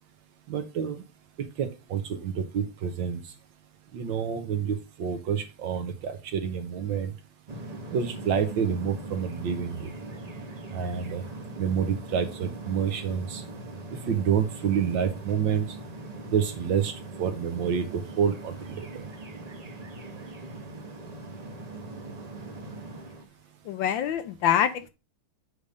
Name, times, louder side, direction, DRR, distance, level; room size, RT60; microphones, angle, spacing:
voice 1, 0.5-1.0 1.6-3.2 3.9-7.1 7.9-9.9 10.7-11.2 11.6-13.4 14.1-15.6 16.3-16.9 17.2-19.0, right 7 dB, 65° right, 1.6 m, -28 dB
sound 1, 7.5-23.2, right 2 dB, 50° right, 0.4 m, -41 dB
voice 2, 23.6-24.9, left 9 dB, 75° left, 1.3 m, -25 dB
8.3 x 3.5 x 5.1 m
omnidirectional pair, 2.3 m